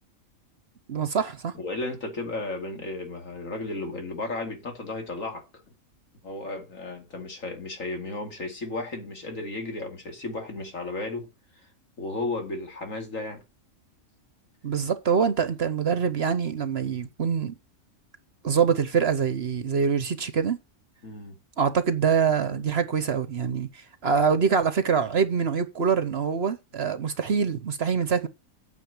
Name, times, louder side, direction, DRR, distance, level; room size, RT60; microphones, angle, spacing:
voice 1, 0.9-1.5 14.6-17.5 18.4-20.6 21.6-28.3, right 6 dB, 50° right, 1.1 m, -25 dB
voice 2, 1.5-5.4 6.2-11.3 12.0-13.4 21.0-21.4, left 2 dB, 65° left, 2.9 m, -34 dB
9.1 x 5.9 x 7.2 m
omnidirectional pair, 1.5 m